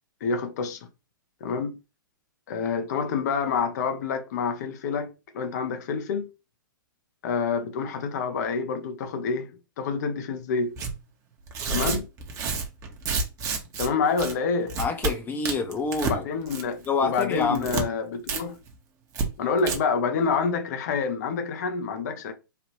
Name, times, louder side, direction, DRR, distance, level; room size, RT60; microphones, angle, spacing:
voice 1, 0.2-0.8 1.4-1.8 2.5-6.3 7.2-10.8 11.7-12.1 13.8-14.8 16.1-18.6 19.4-22.3, left 5 dB, 50° left, 0.6 m, -27 dB
Tearing, 10.8-10.9 11.5-13.9 14.2-14.3 14.7-15.1 15.4-16.2 16.5-16.8 17.1-17.8 18.3-18.4 18.7-18.8 19.1-19.3 19.6-19.8, right 4 dB, 25° right, 0.8 m, -29 dB
voice 2, 14.8-16.3 16.9-17.7, left 4 dB, 15° left, 0.7 m, -27 dB
3.3 x 2.4 x 2.9 m
figure-of-eight pair, 115°, 11 cm